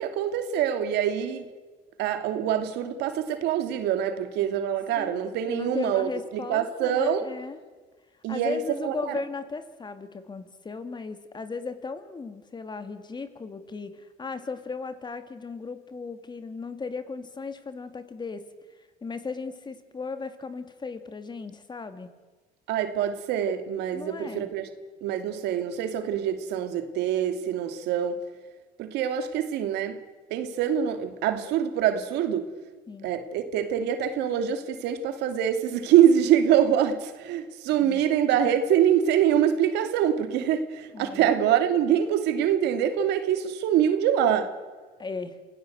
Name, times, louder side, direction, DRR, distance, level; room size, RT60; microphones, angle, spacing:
voice 1, 0.0-1.5 2.0-7.2 8.2-8.9 22.7-24.7 25.0-28.2 28.8-30.0 30.3-32.5 33.0-44.5, right 9 dB, 85° right, 2.5 m, -25 dB
voice 2, 5.0-7.6 8.3-18.5 18.8-22.1 23.9-24.5 32.9-33.1 37.8-38.0 40.9-41.3 45.0-45.4, left 4 dB, 25° left, 2.3 m, -36 dB
27.5 x 17.5 x 8.0 m
cardioid pair, 110°, 17 cm